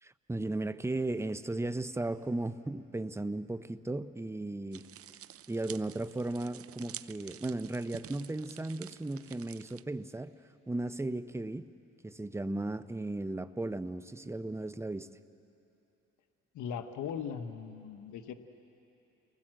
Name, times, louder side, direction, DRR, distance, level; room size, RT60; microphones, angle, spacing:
voice 1, 0.0-4.8 5.5-10.3 10.7-11.7 12.0-15.1, right 2 dB, 10° right, 12 dB, 0.7 m, -36 dB
sound 1, 4.7-9.8, right 11 dB, 50° right, 0.6 m, -49 dB
voice 2, 16.5-18.3, left 7 dB, 80° left, 8 dB, 1.2 m, -39 dB
30.0 x 19.5 x 7.7 m, 2.9 s
cardioid pair, 90°, 30 cm